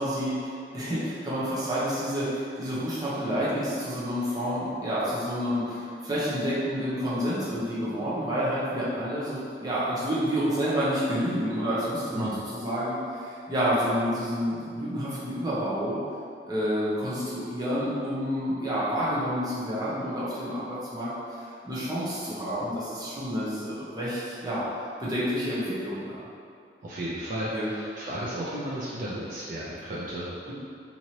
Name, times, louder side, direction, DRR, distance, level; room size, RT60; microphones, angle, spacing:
voice 1, 0.0-16.0 16.5-21.1 21.6-24.6 25.0-26.2 27.5-27.7, equal, 20° right, -9 dB, 0.7 m, -29 dB
voice 2, 26.8-30.5, right 1 dB, 50° right, -7 dB, 0.4 m, -34 dB
3.0 x 2.6 x 2.8 m, 2.4 s
head